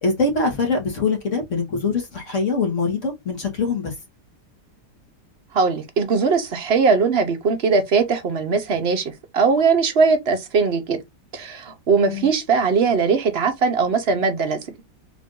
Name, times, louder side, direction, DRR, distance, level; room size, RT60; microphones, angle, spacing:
voice 1, 0.0-3.9 12.0-12.3, left 4 dB, 50° left, 1.4 m, -23 dB
voice 2, 5.5-11.0 11.3-14.6, right 5 dB, 50° right, 0.8 m, -20 dB
3.7 x 2.6 x 3.6 m
omnidirectional pair, 1.8 m